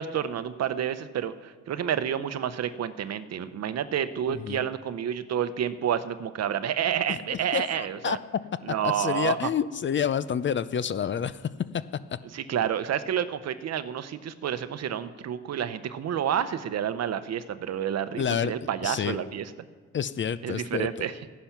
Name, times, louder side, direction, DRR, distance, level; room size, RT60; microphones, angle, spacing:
voice 1, 0.0-8.2 8.6-9.5 12.3-19.5 20.4-21.2, right 9 dB, 60° right, 13 dB, 0.8 m, -29 dB
voice 2, 4.3-4.6 7.1-7.2 7.5-8.2 8.8-11.4 18.2-18.5 18.8-19.2 19.9-21.1, left 8 dB, 40° left, 15 dB, 0.6 m, -28 dB
14.5 x 10.0 x 6.0 m, 1.5 s
cardioid pair, 90°, 30 cm